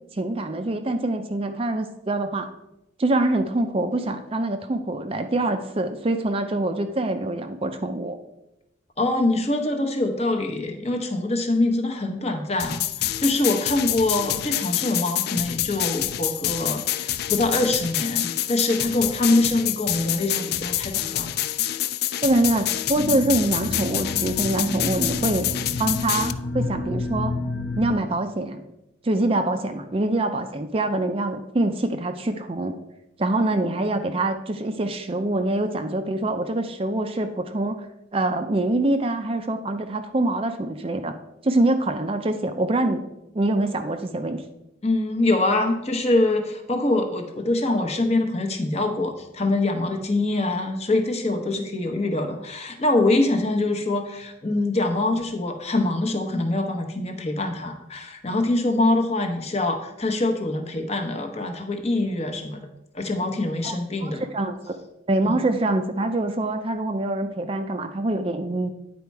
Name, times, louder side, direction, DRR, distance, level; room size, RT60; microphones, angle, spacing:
voice 1, 0.1-2.5 3.0-8.2 22.2-25.5 25.8-27.3 27.8-28.6 29.0-32.8 33.2-37.9 38.1-41.1 41.4-43.0 43.3-44.4 63.6-63.8 64.0-64.8 65.1-68.7, right 2 dB, 30° right, 7 dB, 0.4 m, -25 dB
voice 2, 9.0-21.3 44.8-62.6 62.9-64.2 65.2-65.4, left 2 dB, 30° left, 4 dB, 0.9 m, -24 dB
sound 1, 12.6-26.3, left 13 dB, 50° left, 0.3 m, -27 dB
sound 2, 23.0-28.0, left 2 dB, 75° left, 0.9 m, -30 dB
9.5 x 4.2 x 4.6 m, 0.88 s
head